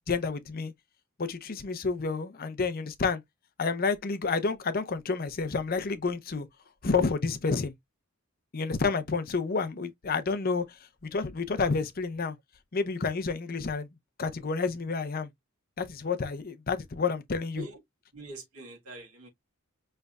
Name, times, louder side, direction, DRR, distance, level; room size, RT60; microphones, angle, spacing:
voice 1, 0.1-0.7 1.2-3.2 3.6-6.5 6.8-7.7 8.5-12.4 12.7-13.9 14.2-15.3 15.8-17.6, left 4 dB, 45° left, 0.6 m, -29 dB
voice 2, 18.1-19.3, right 1 dB, 90° right, 1.7 m, -43 dB
5.2 x 3.2 x 2.2 m
head